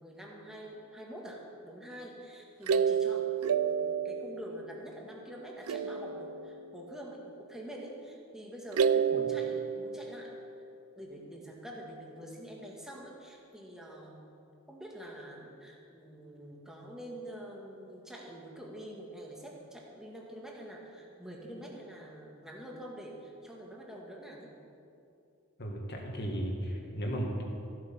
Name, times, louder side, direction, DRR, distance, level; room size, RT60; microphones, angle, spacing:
voice 1, 0.0-10.3 10.9-14.3 14.7-24.5, right 1 dB, ahead, -2 dB, 1.7 m, -46 dB
sound 1, 2.7-5.3 5.7-7.1 8.7-10.7, right 7 dB, 75° right, 0.4 m, -31 dB
voice 2, 25.6-27.4, right 1 dB, 50° left, 1 dB, 1.9 m, -35 dB
14.5 x 8.2 x 5.6 m, 2.6 s
head